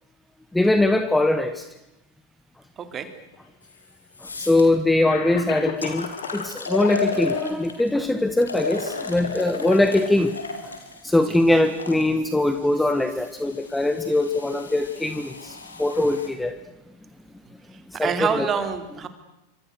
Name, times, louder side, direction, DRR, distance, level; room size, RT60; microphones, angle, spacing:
voice 1, 0.5-1.7 4.4-10.3 11.0-16.6 18.0-18.5, left 2 dB, 5° left, 9 dB, 1.5 m, -22 dB
voice 2, 2.8-3.1 11.3-11.4 17.9-19.1, right 7 dB, 25° right, 9 dB, 3.4 m, -26 dB
Cough, 3.3-3.4 4.4-4.5 5.0-6.5 6.8-7.5, left 9 dB, 55° left, 4.0 m, -33 dB
sound 1, 3.6-3.7 4.1-4.6 5.3-5.4 5.8-7.9 8.4-12.0 12.9-16.3, left 3 dB, 75° left, 4.0 m, -33 dB
28.0 x 26.0 x 6.6 m, 0.93 s
figure-of-eight pair, 90°, 0 cm